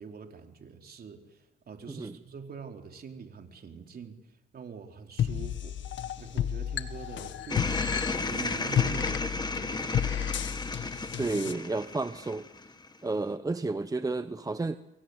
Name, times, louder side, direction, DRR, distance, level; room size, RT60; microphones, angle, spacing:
voice 1, 0.0-5.8 6.2-10.2, right 6 dB, 50° right, 4 dB, 4.2 m, -45 dB
sound 1, 5.2-11.5, left 10 dB, 70° left, 1.8 m, -32 dB
sound 2, 7.5-12.9, left 3 dB, 20° left, 2.0 m, -33 dB
voice 2, 11.2-12.5 13.0-14.8, right 3 dB, 20° right, 11 dB, 1.0 m, -31 dB
29.5 x 23.5 x 8.2 m, 1.0 s
cardioid pair, 90°, 20 cm